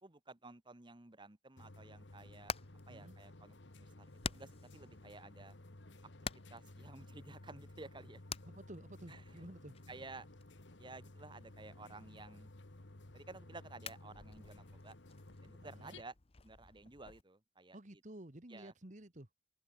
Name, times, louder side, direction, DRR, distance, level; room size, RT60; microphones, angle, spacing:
voice 1, 0.0-2.5 2.9-5.6 6.5-8.2 9.1-9.2 9.9-10.3 10.8-12.5 13.1-15.0 15.4-16.1 16.4-17.8 18.5-18.7, right 3 dB, 25° right, 1.3 m, -53 dB
sound 1, 1.6-16.0, left 1 dB, 90° left, 1.8 m, -56 dB
Hammer, 2.0-17.2, left 5 dB, 35° left, 0.9 m, -51 dB
voice 2, 8.4-9.8 15.6-16.0 17.7-19.3, right 1 dB, 45° right, 2.0 m, -52 dB
head